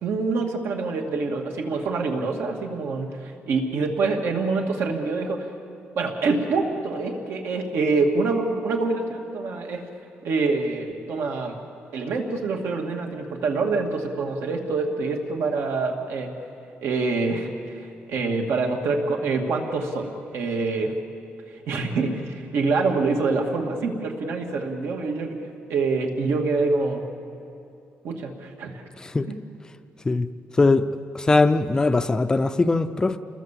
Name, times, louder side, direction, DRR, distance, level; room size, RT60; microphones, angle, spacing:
voice 1, 0.0-5.5 5.9-9.9 10.2-11.6 11.9-16.3 16.8-21.0 21.7-25.4 25.7-27.1 28.0-28.8 29.3-29.4, right 3 dB, 75° right, 2 dB, 2.4 m, -26 dB
voice 2, 30.6-30.9 31.1-33.2, left 3 dB, 15° left, 10 dB, 0.5 m, -20 dB
28.0 x 21.0 x 7.5 m, 2.7 s
wide cardioid pair, 180°, 4 cm